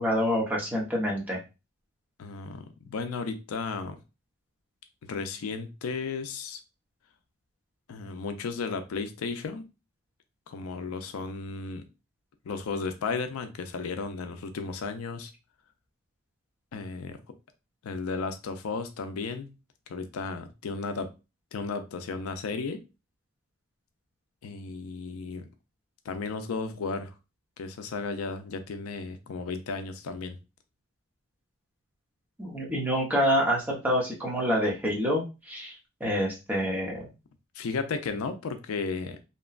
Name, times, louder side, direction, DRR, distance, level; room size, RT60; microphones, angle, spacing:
voice 1, 0.0-1.4 32.4-35.7 36.0-37.1, equal, 10° right, -3 dB, 0.8 m, -27 dB
voice 2, 2.2-4.0 5.0-6.6 7.9-9.6 10.5-11.9 12.5-15.3 16.7-17.2 17.8-19.6 19.9-21.1 21.5-22.8 24.4-25.5 26.1-27.1 27.6-30.4 37.5-39.2, left 4 dB, 80° left, 8 dB, 0.4 m, -34 dB
2.9 x 2.2 x 2.3 m, 0.28 s
head